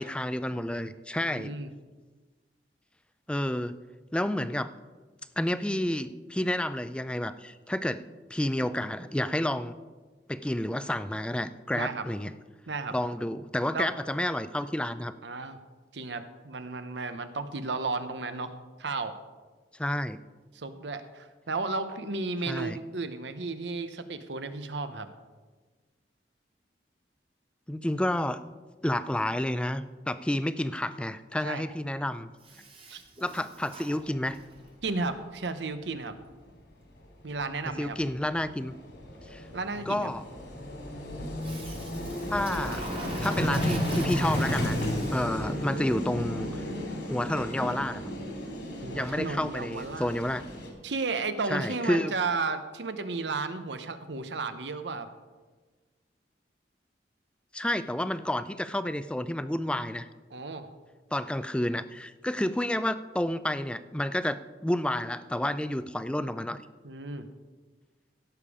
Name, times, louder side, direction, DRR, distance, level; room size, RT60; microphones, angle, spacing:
voice 1, 0.0-1.5 3.3-3.8 4.1-4.7 5.4-8.0 8.3-9.8 10.3-12.3 12.9-15.1 19.8-20.2 22.5-22.8 27.7-28.4 28.8-32.3 33.2-34.4 37.8-38.7 39.3-39.4 39.9-40.2 42.3-42.9 43.2-46.6 47.1-48.0 48.9-50.4 51.5-52.1 57.5-60.1 61.1-66.6, left 1 dB, 5° left, 13 dB, 0.4 m, -30 dB
voice 2, 1.2-1.7 11.7-12.0 12.7-12.9 13.7-13.9 15.2-15.6 15.9-19.2 20.5-25.1 31.4-31.6 32.9-33.0 34.8-36.2 37.2-38.0 39.5-40.1 48.8-50.1 50.8-55.1 60.3-60.7 66.8-67.3, right 3 dB, 80° right, 10 dB, 0.9 m, -33 dB
Toilet flush, 32.4-34.6 41.4-45.5, right 3 dB, 30° right, 1.3 m, -43 dB
Vehicle, 34.6-34.7 34.9-35.0 37.0-37.1 37.3-50.7, left 1 dB, 85° left, 3.3 m, -33 dB
16.5 x 7.0 x 4.9 m, 1.4 s
head